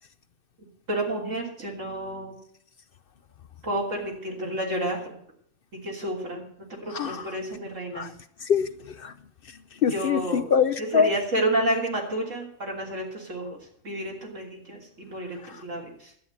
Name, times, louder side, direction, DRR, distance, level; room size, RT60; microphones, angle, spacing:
voice 1, 0.9-2.3 3.6-5.1 5.7-6.5 6.8-8.1 9.9-10.4 10.8-13.6 13.8-16.1, right 1 dB, 80° right, 0 dB, 3.6 m, -30 dB
voice 2, 6.9-7.4 7.9-8.1 8.4-9.1 9.5-11.1 15.4-15.6, left 6 dB, 55° left, 12 dB, 0.7 m, -25 dB
11.5 x 8.8 x 7.8 m, 0.67 s
omnidirectional pair, 1.3 m